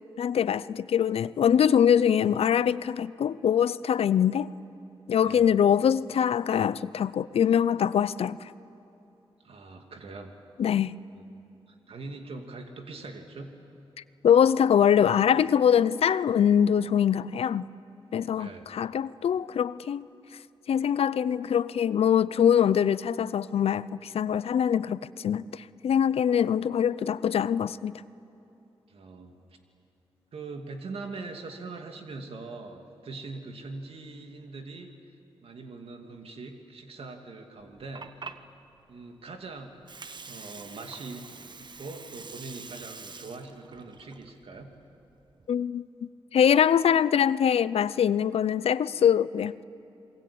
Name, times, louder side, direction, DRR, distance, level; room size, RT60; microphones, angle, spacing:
voice 1, 0.2-4.5 5.1-8.5 10.6-11.0 14.2-17.7 18.1-20.1 20.7-27.9 45.5-49.6, left 8 dB, 80° left, 18 dB, 0.6 m, -23 dB
voice 2, 9.4-10.3 11.1-11.2 11.7-13.5 18.3-18.7 28.9-29.4 30.3-34.9 35.4-38.4 38.9-39.8 40.3-41.3 41.6-44.7, right 3 dB, 75° right, 4 dB, 2.7 m, -42 dB
Water, 37.6-45.5, right 4 dB, 50° right, 1.1 m, -46 dB
27.5 x 22.5 x 8.7 m, 2.9 s
cardioid pair, 60°, 10 cm